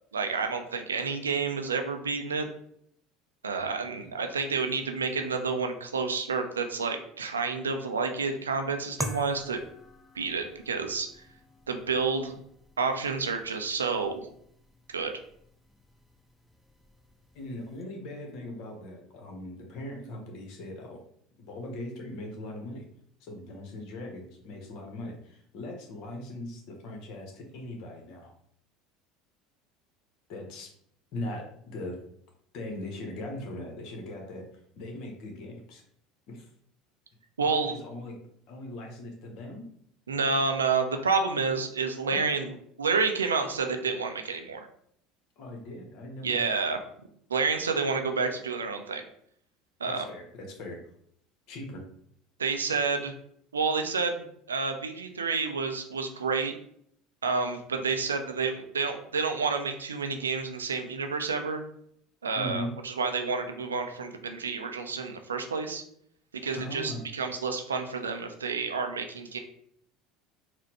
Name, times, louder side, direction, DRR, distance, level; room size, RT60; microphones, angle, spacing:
voice 1, 0.1-2.5 3.4-9.6 10.1-11.1 11.7-12.3 12.8-14.3 14.9-15.1 37.4-37.8 40.1-44.7 46.2-46.8 47.3-49.0 49.8-50.0 52.4-53.1 53.5-56.5 57.2-61.6 62.2-65.8 66.4-69.4, right 4 dB, 85° right, 6 dB, 0.4 m, -29 dB
sound 1, 9.0-17.8, equal, ahead, 0.4 m, -45 dB
voice 2, 17.3-21.0 21.4-22.8 23.2-28.3 30.3-30.7 31.1-32.0 32.5-34.4 34.8-35.8 36.3-36.5 37.4-38.2 38.5-39.7 42.1-42.2 45.4-46.5 49.8-50.8 51.5-51.8 62.3-62.7 66.5-67.0, left 1 dB, 60° left, 2 dB, 0.9 m, -40 dB
4.1 x 2.1 x 2.9 m, 0.68 s
hypercardioid pair, 70°, 0 cm